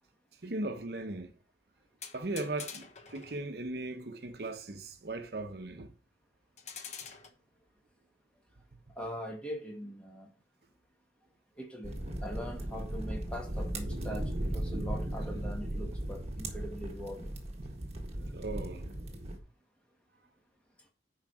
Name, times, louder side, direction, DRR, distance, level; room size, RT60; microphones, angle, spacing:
voice 1, 0.4-1.3 2.1-5.9 17.6-17.8 18.3-18.9, right 2 dB, 60° right, 0.9 m, -38 dB
sound 1, 2.0-3.5 6.6-7.3, left 6 dB, 40° left, 1.1 m, -45 dB
voice 2, 9.0-10.3 11.6-17.3, equal, 5° left, 1.8 m, -42 dB
sound 2, 11.8-19.4, right 1 dB, 35° right, 1.6 m, -37 dB
10.0 x 4.8 x 4.8 m
head